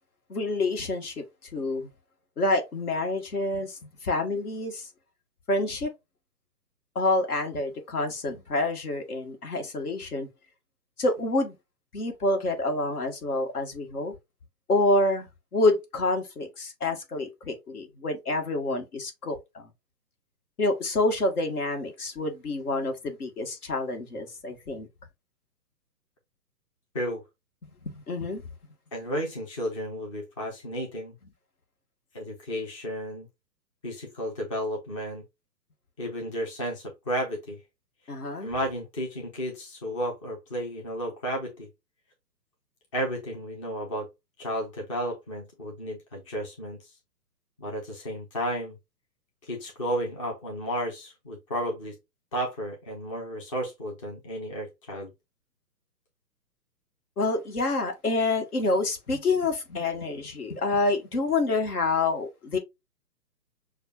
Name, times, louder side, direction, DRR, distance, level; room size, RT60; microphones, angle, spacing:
voice 1, 0.3-1.2 1.5-1.9 2.4-4.9 5.5-5.9 6.9-10.3 11.0-11.5 11.9-14.1 14.7-15.3 15.5-19.7 20.6-24.9 27.6-28.4 38.1-38.5 57.2-62.6, left 2 dB, 60° left, 1.6 m, -27 dB
voice 2, 28.9-31.1 32.1-33.3 33.8-35.2 36.0-37.6 38.4-41.7 42.9-44.1 44.4-46.8 47.6-48.8 49.4-52.0 52.3-55.1, equal, 20° left, 0.6 m, -33 dB
6.5 x 2.4 x 2.6 m
figure-of-eight pair, 130°, 50 cm